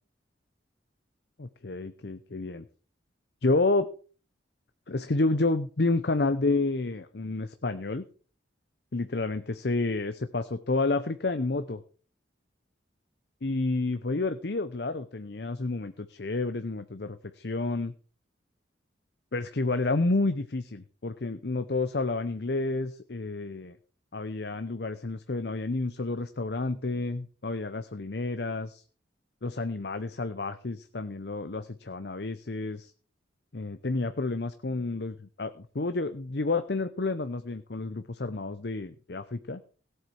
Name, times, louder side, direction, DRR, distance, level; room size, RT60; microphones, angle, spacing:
voice 1, 1.4-2.6 3.4-3.9 4.9-8.0 8.9-11.8 13.4-17.9 19.3-23.8 24.1-28.8 29.4-32.9 33.5-39.6, left 3 dB, 60° left, 10 dB, 0.8 m, -30 dB
17.0 x 8.1 x 4.7 m, 0.40 s
head